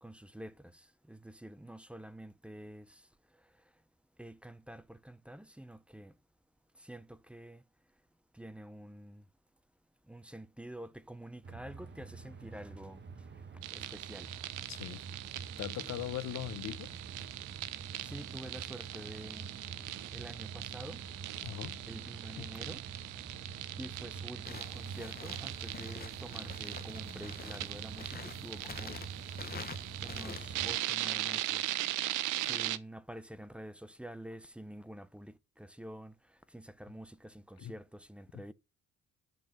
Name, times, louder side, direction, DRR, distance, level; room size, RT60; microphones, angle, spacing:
voice 1, 0.0-3.0 4.2-6.1 6.8-7.6 8.3-9.2 10.1-13.0 13.7-14.3 18.0-19.5 20.1-21.0 21.9-22.8 23.8-29.0 30.0-31.7 32.4-36.2 36.5-38.5, right 1 dB, 5° right, 0.7 m, -48 dB
sound 1, 11.4-30.7, right 5 dB, 35° right, 1.1 m, -47 dB
sound 2, 13.6-32.8, right 15 dB, 90° right, 0.7 m, -40 dB
voice 2, 14.7-15.0 15.6-16.9 21.4-21.8 22.4-22.5 37.6-37.7 38.3-38.4, left 12 dB, 60° left, 0.9 m, -40 dB
sound 3, 24.4-30.8, left 6 dB, 30° left, 0.8 m, -48 dB
10.5 x 4.1 x 6.7 m
cardioid pair, 90°, 30 cm